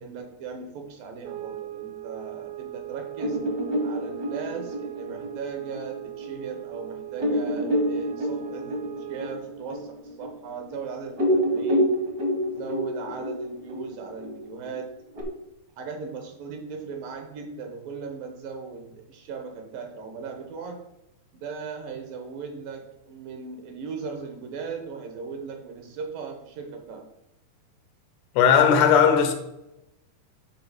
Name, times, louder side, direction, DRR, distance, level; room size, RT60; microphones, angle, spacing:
voice 1, 0.0-3.4 3.8-12.0 12.5-14.9 15.8-20.8 21.3-27.1, right 5 dB, 70° right, 2.5 m, -38 dB
sound 1, 1.2-9.6, right 15 dB, 90° right, 1.9 m, -39 dB
sound 2, 3.2-6.3 6.7-6.8 7.2-10.8 11.1-15.2, equal, 50° right, 1.1 m, -27 dB
voice 2, 28.4-29.3, left 7 dB, 85° left, 3.1 m, -17 dB
11.5 x 3.8 x 5.0 m
omnidirectional pair, 4.6 m